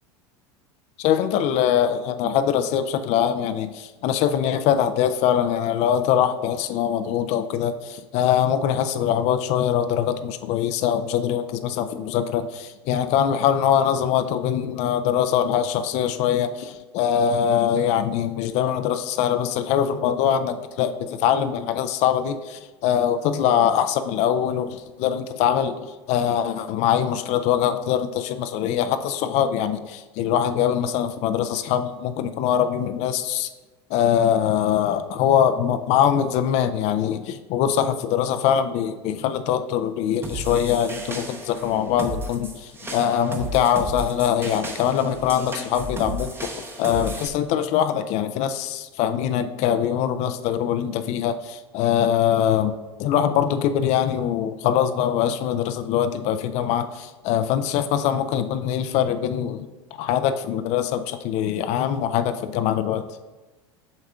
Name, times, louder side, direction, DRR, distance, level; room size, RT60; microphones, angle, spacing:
voice 1, 1.0-33.5 33.9-52.7 53.0-63.1, left 9 dB, 50° left, 10 dB, 0.5 m, -23 dB
sound 1, 40.2-47.3, right 1 dB, 15° right, 0.9 m, -34 dB
8.1 x 6.4 x 2.4 m, 1.2 s
hypercardioid pair, 80°, 15 cm